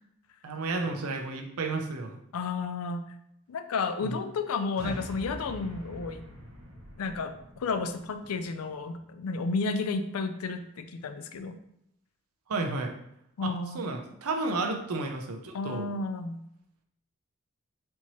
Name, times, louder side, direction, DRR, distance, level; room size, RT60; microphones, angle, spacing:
voice 1, 0.4-2.2 4.0-4.2 4.8-5.0 12.5-12.9 13.4-15.9, right 3 dB, 85° right, 3 dB, 0.6 m, -32 dB
voice 2, 2.3-3.1 3.5-6.2 7.0-11.6 13.4-13.8 15.5-16.4, left 4 dB, 85° left, 9 dB, 0.4 m, -32 dB
sound 1, 4.8-9.2, equal, 70° right, 1.0 m, -46 dB
4.4 x 2.7 x 3.0 m, 0.76 s
head